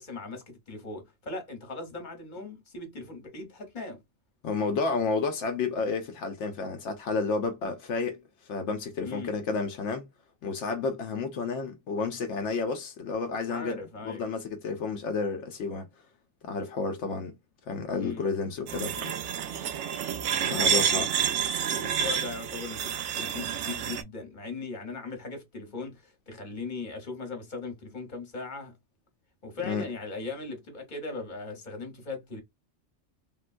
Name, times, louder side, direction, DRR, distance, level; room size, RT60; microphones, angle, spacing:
voice 1, 0.0-4.0 9.0-9.3 13.5-14.3 17.9-18.3 20.4-21.3 21.7-28.8 29.4-32.4, left 3 dB, 40° left, 1.2 m, -39 dB
voice 2, 4.4-8.2 8.5-10.0 10.4-13.8 14.0-15.9 16.4-17.3 17.7-19.1 20.5-21.1 29.6-29.8, left 4 dB, 80° left, 0.9 m, -31 dB
sound 1, 18.7-24.0, right 8 dB, 80° right, 0.9 m, -29 dB
3.7 x 2.2 x 2.4 m
omnidirectional pair, 1.2 m